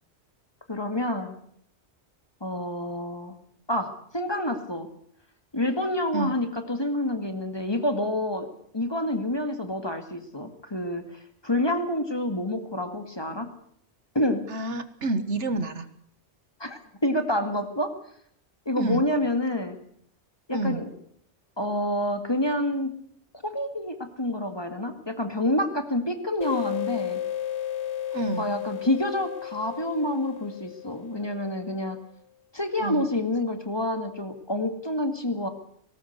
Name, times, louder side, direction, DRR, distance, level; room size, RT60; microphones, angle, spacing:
voice 1, 0.7-1.4 2.4-3.3 3.7-4.9 5.5-8.5 8.7-13.5 14.2-14.4 16.6-17.9 18.7-19.8 20.5-20.9 21.6-22.9 23.4-27.2 28.4-32.0 32.5-35.5, left 1 dB, 20° left, 7 dB, 2.1 m, -28 dB
voice 2, 14.5-15.9 18.8-19.0 20.5-20.8 28.1-28.5 32.8-33.1, right 2 dB, 80° right, 11 dB, 1.8 m, -29 dB
sound 1, 26.4-31.7, left 11 dB, 75° left, 1.3 m, -33 dB
19.0 x 18.5 x 8.1 m, 0.67 s
omnidirectional pair, 1.2 m